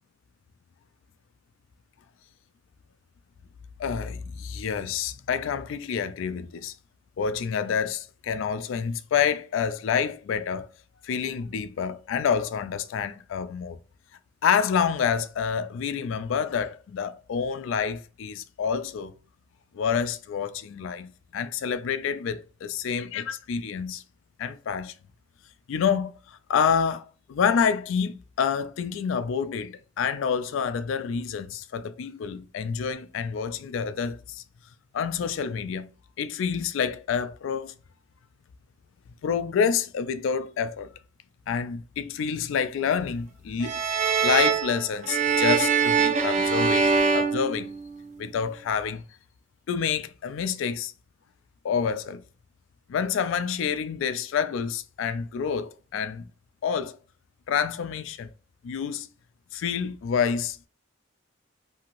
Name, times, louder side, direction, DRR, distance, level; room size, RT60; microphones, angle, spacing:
voice 1, 3.8-6.7 7.2-10.7 11.0-13.8 14.4-19.1 19.7-24.0 24.4-24.9 25.7-34.4 34.9-35.9 36.2-37.7 39.2-40.9 41.5-43.8 44.2-47.7 48.2-49.0 49.7-50.9 51.6-52.2 52.9-56.2 56.6-57.0 57.5-58.3 58.6-59.1 59.5-60.7, left 7 dB, 70° left, 0.3 m, -28 dB
sound 1, 43.6-48.2, right 5 dB, 35° right, 0.3 m, -23 dB
2.8 x 2.5 x 2.9 m
head